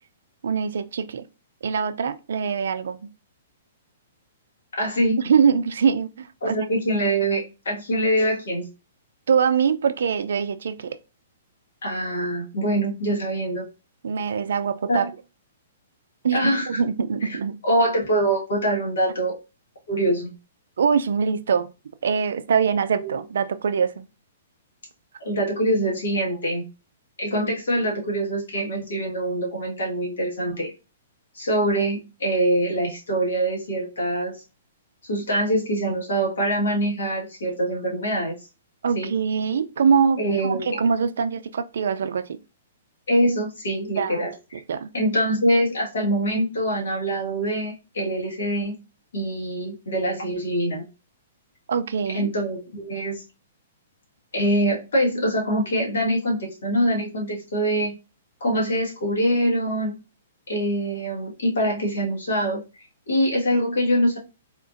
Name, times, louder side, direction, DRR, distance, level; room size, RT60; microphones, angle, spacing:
voice 1, 0.4-1.2 1.6-3.0 5.2-6.7 9.3-11.0 14.0-15.0 16.2-17.6 20.8-21.7 22.0-24.1 38.8-42.4 44.0-44.3 44.7-44.9 51.7-52.3, right 6 dB, 75° right, 0.3 m, -23 dB
voice 2, 4.8-5.2 6.4-8.7 11.8-13.6 14.9-15.1 16.3-16.8 17.6-19.4 19.9-20.3 23.0-23.2 25.2-26.6 27.2-30.7 31.3-34.4 35.1-38.3 38.9-39.1 40.2-40.8 43.1-44.3 44.9-48.7 49.1-50.8 52.1-53.2 54.3-58.0 58.4-59.9 60.5-64.2, right 1 dB, 75° left, 1.5 m, -24 dB
3.6 x 2.5 x 2.5 m
hypercardioid pair, 130°, 0 cm